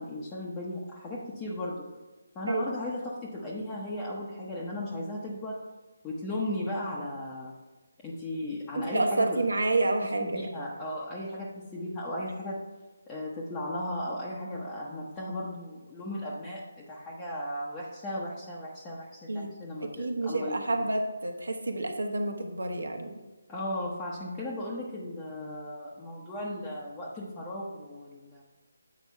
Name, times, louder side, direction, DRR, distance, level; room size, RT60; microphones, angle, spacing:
voice 1, 0.0-1.9 2.3-5.7 6.0-7.5 8.0-9.5 10.0-12.6 13.1-20.9 23.5-28.4, left 1 dB, 15° left, -6 dB, 0.9 m, -36 dB
voice 2, 8.7-10.5 19.3-19.5 19.8-23.1, right 2 dB, 80° right, 4 dB, 1.2 m, -29 dB
8.2 x 5.0 x 4.5 m, 1.2 s
figure-of-eight pair, 160°, 0 cm